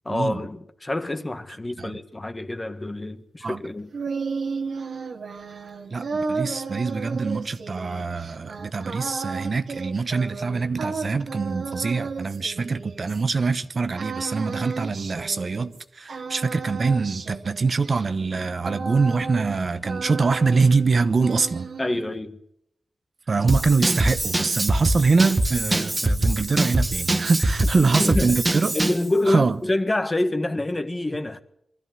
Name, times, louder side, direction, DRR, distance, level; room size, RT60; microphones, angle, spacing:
voice 1, 0.0-3.9 21.8-22.4 28.0-28.4 28.7-31.4, left 2 dB, 25° left, 1.6 m, -26 dB
sound 1, 3.6-13.5 14.0-15.8 16.1-19.6 19.8-20.9 21.2-22.1, right 4 dB, 75° right, 2.2 m, -33 dB
voice 2, 5.9-21.7 23.3-28.7 29.3-29.6, right 4 dB, 50° right, 1.0 m, -24 dB
Drum kit / Drum, 23.5-29.1, right 1 dB, 25° right, 1.6 m, -23 dB
23.5 x 14.0 x 9.4 m
wide cardioid pair, 95°, 0 cm